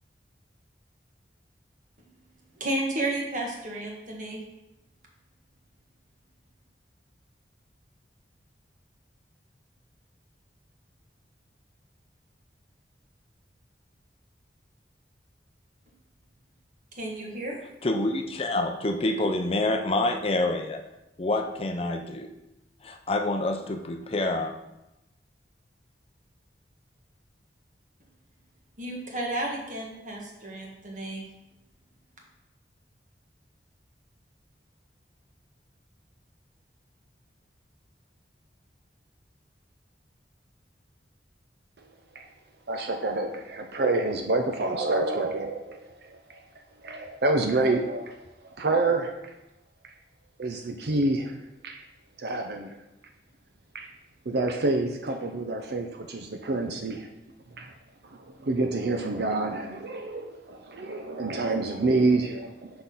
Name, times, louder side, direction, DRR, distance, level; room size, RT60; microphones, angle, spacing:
voice 1, 2.6-4.4 17.0-17.6 28.8-31.2, right 1 dB, 45° right, 0 dB, 1.4 m, -32 dB
voice 2, 17.8-20.8 21.2-22.3 22.8-24.5, left 2 dB, 35° left, 4 dB, 0.5 m, -27 dB
voice 3, 42.7-46.4 46.8-48.3 48.6-49.1 50.4-51.4 51.6-51.8 52.2-52.7 53.7-53.9 54.3-57.1 57.6-57.7 58.1-62.7, right 2 dB, 65° right, 4 dB, 0.6 m, -27 dB
6.0 x 5.7 x 3.9 m, 0.92 s
head